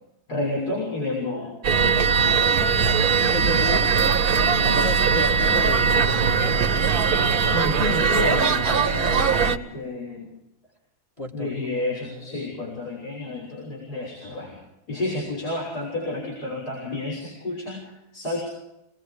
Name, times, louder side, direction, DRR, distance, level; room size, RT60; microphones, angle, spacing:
voice 1, 0.3-1.6 7.5-10.4 11.3-14.6 14.9-18.4, left 2 dB, 75° left, -4 dB, 7.1 m, -30 dB
sound 1, 1.6-9.6, right 5 dB, 70° right, 1.6 m, -20 dB
voice 2, 2.3-3.9 4.5-6.9 11.2-11.7 12.1-12.4 12.6-12.7, left 1 dB, 20° left, 3 dB, 1.8 m, -34 dB
28.5 x 19.5 x 5.0 m, 0.90 s
omnidirectional pair, 1.7 m